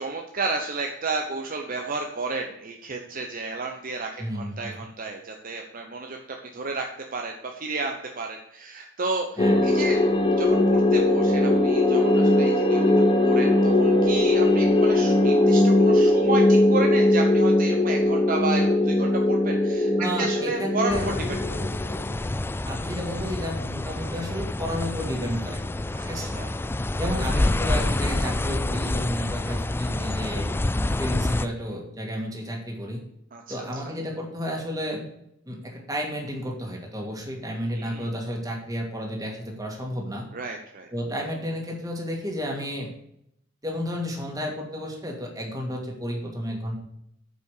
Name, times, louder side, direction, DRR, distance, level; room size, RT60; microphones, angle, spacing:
voice 1, 0.0-6.9 7.1-10.0 10.4-12.9 13.2-19.9 20.2-21.0 21.3-21.7 25.9-26.6 29.1-29.3 33.3-33.6 37.7-38.1 40.3-40.9, right 3 dB, 45° right, 3 dB, 0.9 m, -32 dB
voice 2, 4.2-4.7 9.4-9.6 20.0-21.1 22.6-25.6 26.0-26.3 27.0-30.5 30.8-33.0 33.5-35.1 35.5-40.3 40.9-42.9 43.6-46.8, equal, 20° right, 0 dB, 2.4 m, -32 dB
sound 1, 9.4-22.2, left 1 dB, 25° left, 1.1 m, -20 dB
sound 2, 20.9-31.5, left 2 dB, 10° left, 0.3 m, -27 dB
8.6 x 5.7 x 6.6 m, 0.76 s
head